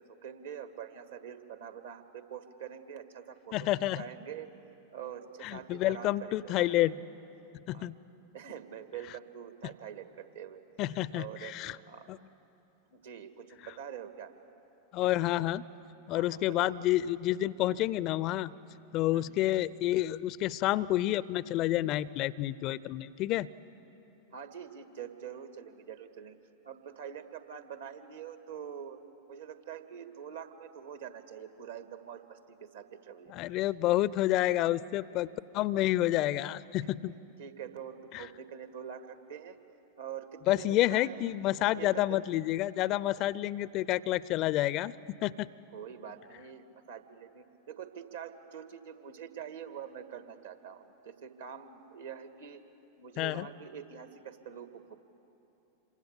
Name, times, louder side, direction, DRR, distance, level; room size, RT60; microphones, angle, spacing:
voice 1, 0.0-3.6 3.9-4.5 4.9-6.9 7.7-7.9 8.3-10.6 11.1-11.5 11.9-12.1 12.9-14.3 16.1-16.7 19.1-19.4 24.3-26.4 26.6-29.0 29.3-33.3 37.4-39.6 40.0-41.3 41.7-42.2 45.7-52.6 53.0-54.9, right 8 dB, 65° right, 9 dB, 1.8 m, -45 dB
voice 2, 3.5-4.0 5.4-6.9 7.7-8.0 10.8-11.8 12.1-12.2 14.9-15.6 16.1-18.5 18.9-23.5 33.3-37.1 38.1-38.3 40.5-44.9 45.2-45.5 53.2-53.5, left 15 dB, 40° left, 20 dB, 0.5 m, -29 dB
27.0 x 24.0 x 8.4 m, 3.0 s
figure-of-eight pair, 90°, 0 cm